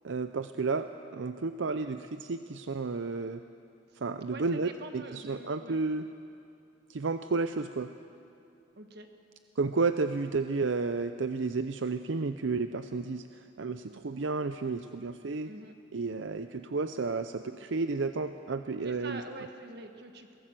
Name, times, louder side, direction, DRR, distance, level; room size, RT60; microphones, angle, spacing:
voice 1, 0.0-3.4 4.0-6.0 6.9-7.9 9.6-15.5 15.9-19.2, right 4 dB, 80° right, 9 dB, 0.6 m, -32 dB
voice 2, 4.3-5.8 8.8-9.1 15.5-15.7 18.8-20.4, right 2 dB, 60° right, 6 dB, 1.7 m, -45 dB
23.0 x 17.0 x 7.6 m, 2.6 s
head